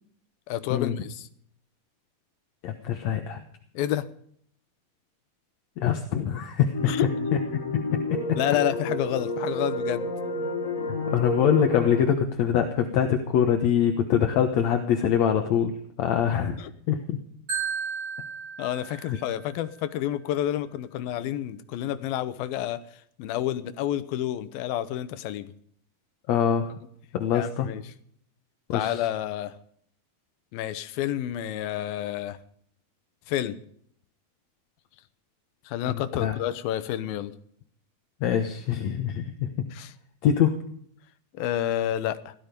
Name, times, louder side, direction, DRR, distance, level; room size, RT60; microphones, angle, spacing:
voice 1, 0.5-1.3 3.7-4.1 6.9-7.1 8.4-10.1 16.6-16.7 18.6-25.5 27.3-27.8 28.7-29.6 30.5-32.4 33.3-33.6 35.7-37.3 39.7-39.9 41.3-42.3, left 12 dB, 85° left, 13 dB, 2.7 m, -29 dB
voice 2, 2.6-3.4 5.8-7.0 7.3-7.4 8.3-8.4 11.1-16.6 16.9-17.2 19.1-19.2 26.3-26.7 27.1-27.7 28.7-29.1 35.8-36.4 38.2-39.5 40.2-40.6, left 8 dB, 65° left, 5 dB, 2.0 m, -24 dB
sound 1, 6.7-12.0, left 2 dB, 30° left, 2.0 m, -30 dB
Marimba xylophone, 17.5-19.6, right 6 dB, 30° right, 6.2 m, -34 dB
17.5 x 13.5 x 5.2 m, 0.64 s
omnidirectional pair, 4.2 m